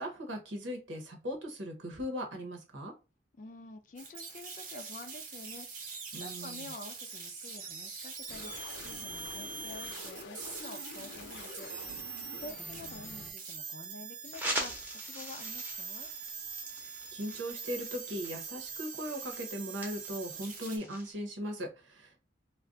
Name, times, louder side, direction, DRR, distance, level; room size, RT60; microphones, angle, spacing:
voice 1, 0.0-2.9 6.1-6.7 16.8-22.2, equal, 90° right, 0.9 m, -39 dB
voice 2, 3.4-11.7 12.1-16.1, left 2 dB, 40° left, 0.3 m, -49 dB
sound 1, 4.0-20.8, right 5 dB, 45° right, 0.7 m, -43 dB
sound 2, 8.3-13.3, left 3 dB, 75° left, 0.6 m, -47 dB
sound 3, 14.3-21.1, right 1 dB, 10° right, 0.7 m, -42 dB
2.4 x 2.2 x 3.7 m
head